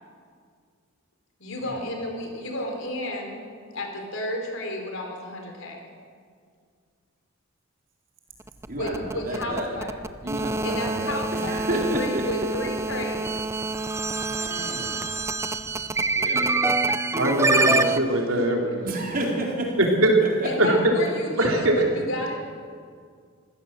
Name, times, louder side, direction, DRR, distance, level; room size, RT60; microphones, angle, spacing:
voice 1, 1.4-3.4 3.7-5.8 8.7-9.9 10.6-13.4 20.4-22.4, left 1 dB, 70° left, 2 dB, 4.2 m, -32 dB
sound 1, 8.4-18.0, right 3 dB, 15° right, 0.5 m, -26 dB
voice 2, 8.7-9.7 10.2-12.7 14.1-15.0 16.1-16.6 18.8-20.5, right 1 dB, 40° right, -1 dB, 4.2 m, -31 dB
voice 3, 17.1-18.7 20.0-20.2 20.6-20.8 21.4-21.8, right 1 dB, 80° right, 0 dB, 3.8 m, -21 dB
25.5 x 16.0 x 7.6 m, 2.1 s
head